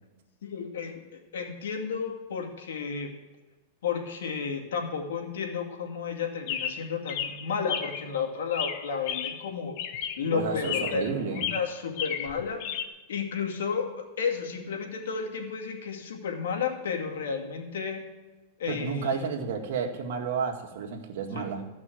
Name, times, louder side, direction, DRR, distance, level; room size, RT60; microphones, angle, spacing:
voice 1, 0.4-3.1 3.8-9.7 10.2-12.8 13.1-13.9 14.2-18.0 18.6-19.2 21.3-21.4, left 6 dB, 85° left, 2 dB, 2.4 m, -32 dB
Chirp tweet, 6.5-8.1 8.5-9.5 9.8-10.3 10.6-11.1 11.3-12.8, left 9 dB, 50° left, 0.9 m, -33 dB
voice 2, 10.3-11.5 18.7-21.6, right 5 dB, 65° right, 3 dB, 2.0 m, -31 dB
14.5 x 6.1 x 7.8 m, 1.2 s
supercardioid pair, 145°, 0 cm